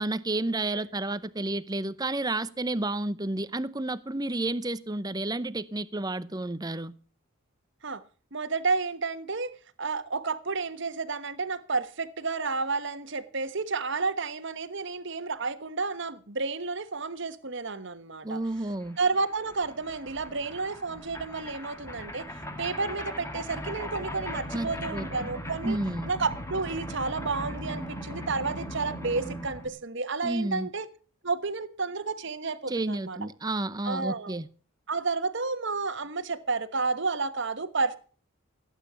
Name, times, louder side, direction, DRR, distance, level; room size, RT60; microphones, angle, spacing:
voice 1, 0.0-6.9 18.2-19.0 24.5-25.3 25.6-26.1 30.2-30.7 32.7-34.5, right 2 dB, 20° right, 0.7 m, -31 dB
voice 2, 8.3-18.4 19.0-25.8 26.1-30.9 31.2-33.3 33.8-34.4 34.9-38.0, right 4 dB, 55° right, 1.3 m, -31 dB
sound 1, 18.5-18.6 18.8-29.7, equal, 15° left, 2.3 m, -39 dB
17.0 x 9.1 x 6.9 m
head